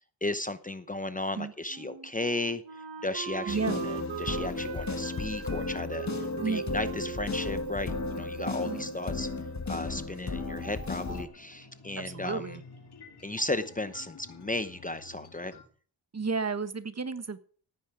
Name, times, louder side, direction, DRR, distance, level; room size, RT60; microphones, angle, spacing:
voice 1, 0.2-9.3 9.7-12.6 13.2-15.5, left 2 dB, 20° left, 12 dB, 0.8 m, -35 dB
Wind instrument woodwind instrument, 1.7-9.2, right 9 dB, 75° right, 1.6 m, -42 dB
sound 1, 3.5-11.3, left 3 dB, 40° left, 1.9 m, -34 dB
voice 2, 3.5-3.8 6.4-6.6 8.6-8.9 12.0-12.6 16.1-17.4, right 4 dB, 35° right, 11 dB, 1.3 m, -32 dB
sound 2, 8.5-15.6, left 4 dB, 60° left, 3.6 m, -52 dB
16.5 x 9.5 x 4.9 m, 0.43 s
cardioid pair, 90°, 44 cm